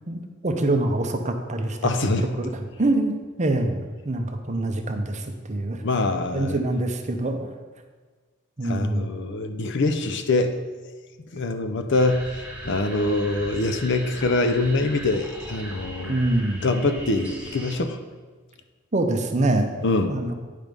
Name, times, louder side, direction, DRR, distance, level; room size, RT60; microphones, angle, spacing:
voice 1, 0.1-1.9 2.4-5.8 6.3-7.5 8.6-9.1 16.1-16.7 18.9-19.7 20.1-20.3, right 2 dB, 35° right, 5 dB, 0.8 m, -25 dB
voice 2, 1.8-2.3 5.8-6.6 8.6-10.6 11.3-16.2 16.6-18.0 19.8-20.1, left 2 dB, 60° left, 8 dB, 0.7 m, -24 dB
sound 1, 11.9-17.8, right 1 dB, 5° right, 1.2 m, -39 dB
9.3 x 5.2 x 5.3 m, 1.4 s
head